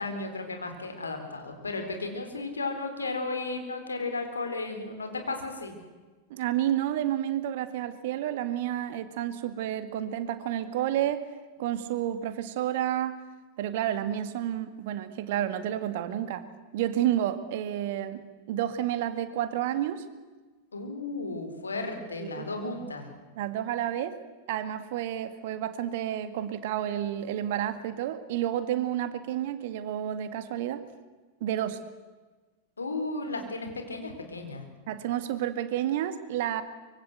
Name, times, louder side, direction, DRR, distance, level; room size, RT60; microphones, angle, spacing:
voice 1, 0.0-5.7 20.7-23.1 32.8-34.6, left 3 dB, 75° left, 5 dB, 4.1 m, -34 dB
voice 2, 6.3-11.3 11.6-13.2 13.6-16.5 16.7-20.1 22.2-22.6 23.4-24.2 24.5-30.8 31.4-31.8 34.9-36.6, right 11 dB, 50° right, 12 dB, 1.9 m, -30 dB
24.5 x 23.5 x 8.1 m, 1.3 s
figure-of-eight pair, 90°, 0 cm